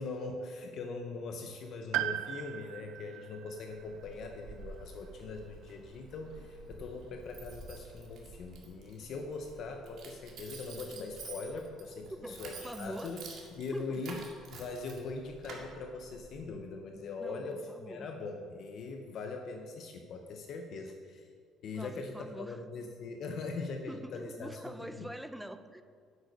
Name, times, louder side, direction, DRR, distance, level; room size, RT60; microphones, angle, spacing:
voice 1, 0.0-13.2 13.6-14.2 14.5-21.3 21.6-25.1, left 3 dB, 45° left, 4 dB, 0.7 m, -41 dB
Piano, 1.9-5.8 6.1-6.2 7.3-7.4, right 13 dB, 70° right, 0.4 m, -39 dB
Keys jangling, 3.5-16.5, right 3 dB, 45° right, 1.8 m, -50 dB
voice 2, 12.2-13.2 13.7-14.0 17.2-18.1 21.7-22.6 23.9-25.8, right 1 dB, ahead, 10 dB, 0.4 m, -44 dB
9.5 x 8.2 x 5.3 m, 2.1 s
cardioid pair, 180°, 0 cm